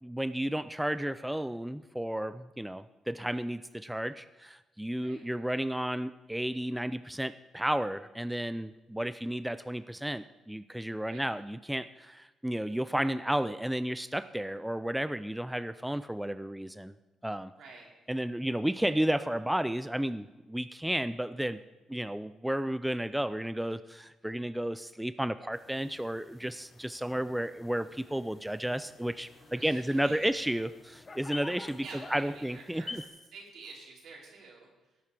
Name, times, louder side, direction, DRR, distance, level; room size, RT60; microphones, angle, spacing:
voice 1, 0.0-16.9 17.2-17.5 18.1-21.6 21.9-31.8 32.1-33.0, right 1 dB, 5° right, 13 dB, 0.4 m, -32 dB
voice 2, 17.5-17.9 29.4-30.3 31.8-35.0, right 4 dB, 70° right, -2 dB, 4.3 m, -49 dB
sound 1, 25.5-33.1, left 3 dB, 30° left, 1.1 m, -49 dB
17.0 x 8.4 x 4.9 m, 1.1 s
cardioid pair, 90°, 0 cm